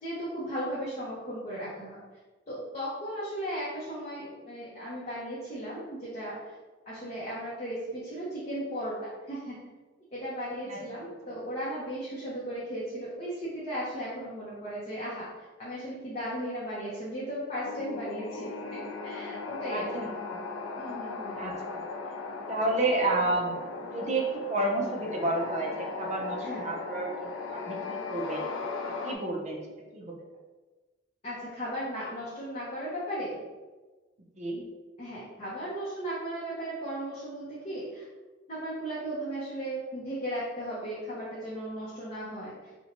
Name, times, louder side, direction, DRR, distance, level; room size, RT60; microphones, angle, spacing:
voice 1, 0.0-2.0 2.5-6.4 6.9-9.6 10.1-15.3 15.6-19.9 20.8-21.5 26.4-26.6 31.2-33.4 35.0-38.0 38.5-42.5, equal, 35° left, -8 dB, 0.6 m, -36 dB
sound 1, 17.6-29.1, left 4 dB, 80° left, 0.3 m, -37 dB
voice 2, 19.7-20.4 21.3-21.8 22.5-23.6 23.9-28.5 28.9-29.6 29.9-30.2 34.4-34.6, right 2 dB, 40° right, 0 dB, 0.5 m, -31 dB
2.6 x 2.1 x 2.8 m, 1.3 s
head